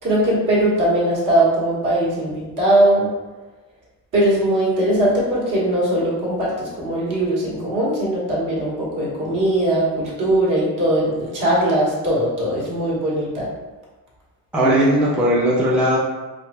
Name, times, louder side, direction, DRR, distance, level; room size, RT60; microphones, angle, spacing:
voice 1, 0.0-3.1 4.1-13.5, right 1 dB, 55° right, -6 dB, 1.4 m, -20 dB
voice 2, 14.5-16.0, equal, 5° right, -6 dB, 0.4 m, -17 dB
4.7 x 2.6 x 2.2 m, 1.2 s
cardioid pair, 165°, 36 cm